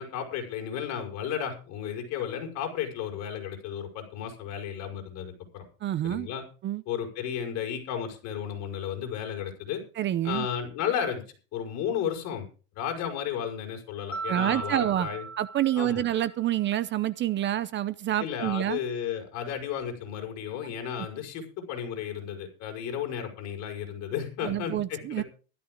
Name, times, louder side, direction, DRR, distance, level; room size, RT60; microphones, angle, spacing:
voice 1, 0.0-5.6 6.0-6.4 6.9-9.8 10.2-11.2 11.5-12.4 12.7-15.2 15.8-16.0 18.2-25.2, left 8 dB, 50° left, 5.7 m, -33 dB
voice 2, 5.8-6.3 6.6-6.8 10.0-10.5 14.3-15.1 15.4-18.8 20.6-20.7 24.4-25.2, right 12 dB, 35° right, 0.7 m, -27 dB
Mallet percussion, 14.1-16.5, right 4 dB, 5° left, 0.7 m, -38 dB
15.5 x 13.0 x 3.8 m
cardioid pair, 145°, 33 cm